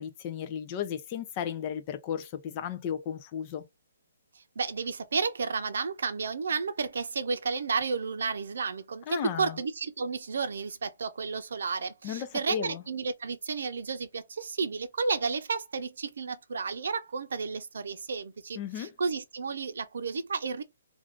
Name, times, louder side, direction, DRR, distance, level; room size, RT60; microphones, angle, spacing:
voice 1, 0.0-3.6 9.1-9.6 12.0-12.8 18.6-18.9, left 9 dB, 25° left, 0.4 m, -35 dB
voice 2, 4.3-20.6, right 5 dB, 70° right, 0.6 m, -32 dB
2.5 x 2.4 x 3.5 m
hypercardioid pair, 175°, 0 cm